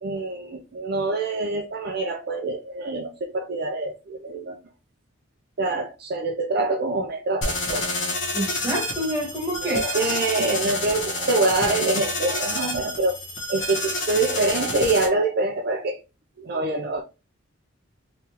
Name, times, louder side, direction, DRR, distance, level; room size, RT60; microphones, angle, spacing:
voice 1, 0.0-4.6 5.6-7.9 9.6-13.2 13.5-16.0 16.4-17.0, right 2 dB, 55° right, 0.5 m, -25 dB
sound 1, 7.4-15.1, left 2 dB, 70° left, 1.3 m, -29 dB
voice 2, 8.3-9.8, right 1 dB, 10° right, 1.3 m, -27 dB
3.8 x 3.2 x 2.8 m
head